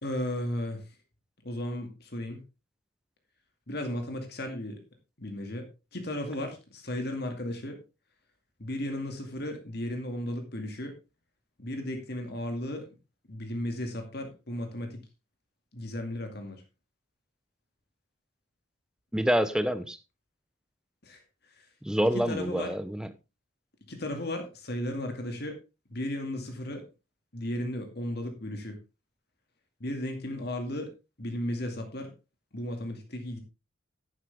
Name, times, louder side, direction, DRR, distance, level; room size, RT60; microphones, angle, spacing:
voice 1, 0.0-0.8 1.4-2.4 3.7-4.8 5.2-5.7 5.9-7.8 8.6-10.9 11.6-12.9 13.3-15.0 15.7-16.6 19.5-19.8 21.0-21.2 21.5-21.7 22.1-22.7 23.9-25.6 25.9-26.8 27.3-28.8 29.8-30.9 31.2-32.1 32.5-33.4, left 1 dB, 50° left, 2.2 m, -35 dB
voice 2, 19.1-20.0 21.8-23.1, equal, 5° right, 0.7 m, -27 dB
11.0 x 9.9 x 3.5 m
head